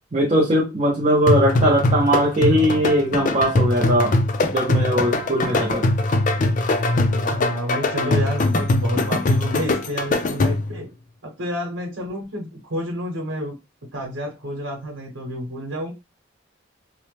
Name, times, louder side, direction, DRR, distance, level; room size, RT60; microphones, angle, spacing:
voice 1, 0.1-4.1 4.5-5.9, equal, 35° right, 0.6 m, -20 dB
sound 1, 1.3-10.8, left 2 dB, 40° left, 0.4 m, -21 dB
voice 2, 7.2-10.9 11.2-13.5 13.9-15.9, equal, 90° right, 1.0 m, -29 dB
2.8 x 2.1 x 3.2 m
head